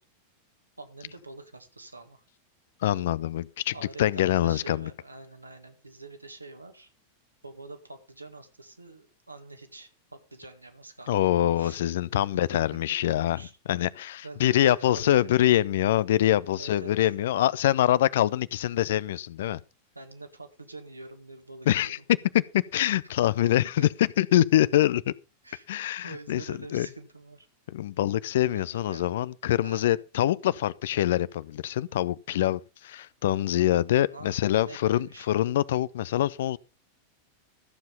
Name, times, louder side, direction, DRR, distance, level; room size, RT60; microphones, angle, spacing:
voice 1, 0.8-2.2 3.7-6.9 7.4-11.8 12.1-12.3 12.5-12.6 13.3-13.6 14.0-15.5 16.6-16.9 19.9-21.9 23.4-23.5 23.8-23.9 25.4-25.7 26.0-27.5 28.5-29.1 29.6-30.0 33.9-35.5, right 3 dB, 85° right, 1.9 m, -46 dB
voice 2, 2.8-4.9 11.1-13.4 13.7-19.6 21.7-22.0 22.3-22.4 22.7-25.1 25.7-26.9 27.7-36.6, left 13 dB, 55° left, 0.5 m, -25 dB
14.0 x 7.5 x 5.3 m
figure-of-eight pair, 90°, 0 cm